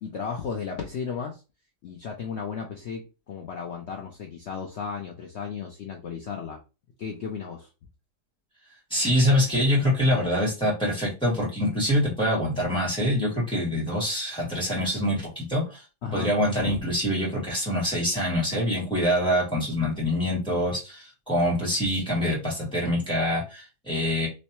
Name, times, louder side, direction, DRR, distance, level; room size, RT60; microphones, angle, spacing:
voice 1, 0.0-1.4 1.8-6.6 7.0-7.7 16.0-16.8, left 6 dB, 65° left, 2 dB, 0.6 m, -34 dB
voice 2, 8.9-15.8 16.1-24.3, equal, 5° left, -4 dB, 2.0 m, -25 dB
3.2 x 3.1 x 2.9 m, 0.29 s
omnidirectional pair, 1.8 m